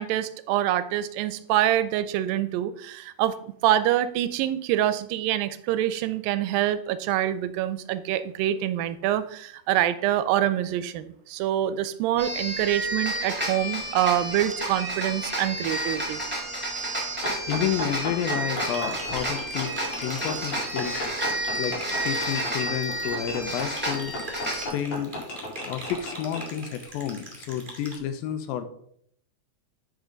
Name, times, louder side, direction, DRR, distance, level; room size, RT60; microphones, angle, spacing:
voice 1, 0.0-3.4 3.6-16.2, right 12 dB, 85° right, 13 dB, 2.2 m, -25 dB
sound 1, 12.2-24.7, right 1 dB, 5° right, 1.4 m, -31 dB
sound 2, 17.2-26.5, left 1 dB, 55° left, 3.9 m, -35 dB
voice 2, 17.5-21.0 21.6-21.8 22.0-24.1 24.5-25.1 25.7-28.7, left 9 dB, 80° left, 10 dB, 2.5 m, -30 dB
sound 3, 18.5-27.9, right 1 dB, 30° right, 0.9 m, -42 dB
9.6 x 5.3 x 3.9 m, 0.67 s
omnidirectional pair, 4.1 m